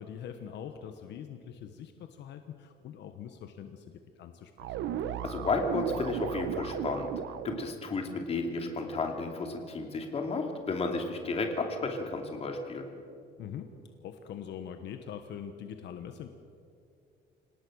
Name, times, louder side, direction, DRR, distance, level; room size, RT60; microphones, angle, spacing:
voice 1, 0.0-4.8 13.4-13.7 14.0-16.3, left 8 dB, 70° left, 7 dB, 1.2 m, -43 dB
sound 1, 4.6-7.7, right 10 dB, 90° right, 1.0 m, -35 dB
voice 2, 5.2-7.1 7.4-12.8, left 3 dB, 35° left, 3 dB, 2.7 m, -32 dB
26.5 x 18.0 x 6.4 m, 2.5 s
cardioid pair, 165°, 19 cm